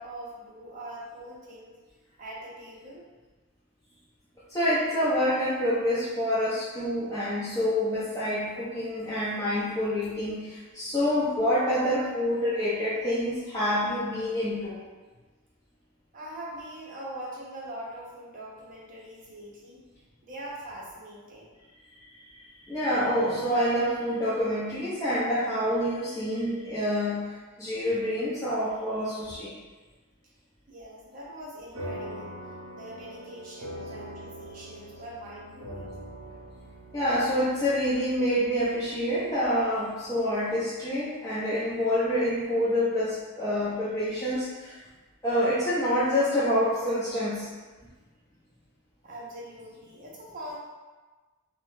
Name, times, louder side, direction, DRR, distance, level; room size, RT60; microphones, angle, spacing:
voice 1, 0.0-1.8 2.2-3.0 15.1-15.2 16.1-19.8 20.2-21.5 30.2-30.3 30.7-32.4 32.7-36.0 49.0-50.6, right 1 dB, 35° right, -5 dB, 0.6 m, -42 dB
voice 2, 4.5-14.8 22.2-29.6 36.9-44.8 45.2-47.5, equal, 15° left, -10 dB, 0.4 m, -27 dB
sound 1, 31.7-40.5, equal, 75° right, 0.6 m, -43 dB
2.6 x 2.1 x 3.1 m, 1.3 s
head